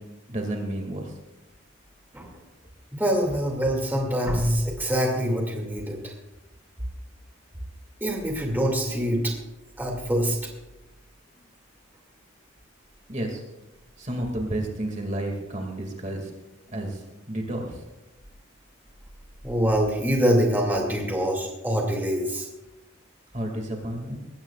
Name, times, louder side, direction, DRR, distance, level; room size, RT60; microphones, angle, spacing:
voice 1, 0.3-1.1 13.1-13.4 14.0-16.3 16.7-17.0 17.3-17.8 23.3-24.2, right 1 dB, 35° right, 1 dB, 2.2 m, -31 dB
voice 2, 3.0-6.1 8.0-9.3 9.8-10.4 19.4-22.5, equal, 10° right, 0 dB, 2.3 m, -24 dB
20.0 x 16.5 x 2.4 m, 1.0 s
head